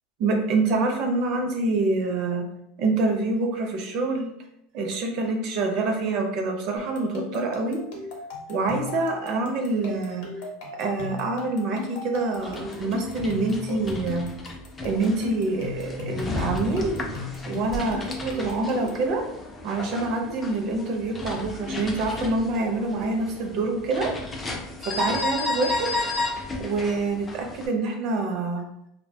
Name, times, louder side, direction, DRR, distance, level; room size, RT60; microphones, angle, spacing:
voice 1, 0.2-2.4 2.8-4.3 4.7-7.8 8.5-10.2 10.8-14.2 14.8-17.0 17.4-19.2 19.6-24.1 24.8-25.9 26.6-28.6, right 3 dB, 50° right, 3 dB, 0.5 m, -26 dB
sound 1, 6.8-19.1, left 4 dB, 70° left, 0.7 m, -37 dB
sound 2, 12.3-27.7, left 2 dB, 15° left, 0.4 m, -33 dB
2.4 x 2.2 x 2.6 m, 0.76 s
supercardioid pair, 140°, 0 cm